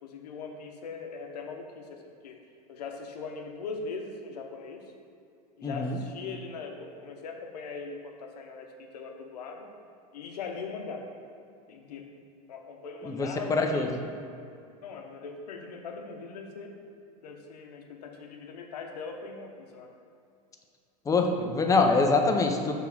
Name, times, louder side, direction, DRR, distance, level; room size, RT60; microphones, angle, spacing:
voice 1, 0.0-2.4 2.7-4.8 5.6-9.7 10.1-11.0 11.7-12.1 12.5-14.0 14.8-16.8 17.2-19.9 21.1-21.2, left 4 dB, 85° left, 3 dB, 0.8 m, -40 dB
voice 2, 5.6-6.0 13.0-13.9 21.1-22.7, left 3 dB, 15° left, 3 dB, 0.6 m, -24 dB
5.9 x 3.6 x 5.9 m, 2.5 s
supercardioid pair, 115°, 20 cm